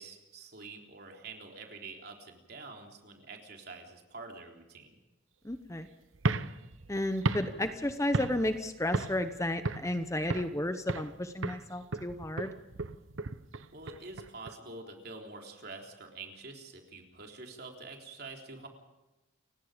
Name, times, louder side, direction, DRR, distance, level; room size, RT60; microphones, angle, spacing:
voice 1, 0.0-5.0 13.7-18.7, right 3 dB, 50° right, 2 dB, 3.7 m, -47 dB
voice 2, 5.4-5.9 6.9-12.5, left 1 dB, 15° left, 9 dB, 0.9 m, -32 dB
Cough, 5.5-5.6 6.6-6.7 7.2-8.6 9.0-9.6, left 2 dB, 75° left, 4.2 m, -58 dB
sound 1, 6.1-8.6 8.9-9.3 9.6-10.6 10.9-11.2 11.4-14.5, right 3 dB, 85° right, 0.9 m, -35 dB
29.5 x 17.0 x 5.2 m, 1.0 s
head